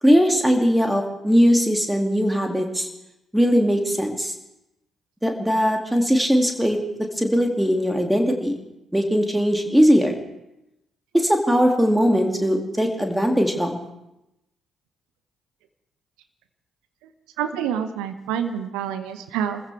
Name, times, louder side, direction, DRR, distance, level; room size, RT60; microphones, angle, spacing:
voice 1, 0.0-2.9 3.3-4.3 5.2-6.8 7.2-8.5 8.9-10.1 11.1-13.7, equal, 5° right, 3 dB, 2.4 m, -20 dB
voice 2, 17.4-19.6, right 9 dB, 65° right, 9 dB, 1.0 m, -27 dB
26.5 x 15.0 x 3.4 m, 0.90 s
figure-of-eight pair, 40°, 0 cm